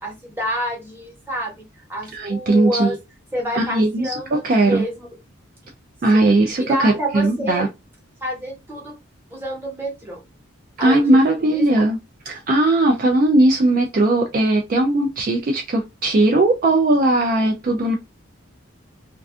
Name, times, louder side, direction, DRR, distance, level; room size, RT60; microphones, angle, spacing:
voice 1, 0.0-3.0 3.3-5.1 6.1-7.7 8.2-8.9 9.3-10.2 10.8-11.8, equal, 10° right, 0.9 m, -28 dB
voice 2, 2.1-3.0 3.5-4.9 6.0-7.7 10.8-12.0 12.3-18.0, right 2 dB, 40° right, 0.3 m, -18 dB
2.4 x 2.3 x 2.3 m
head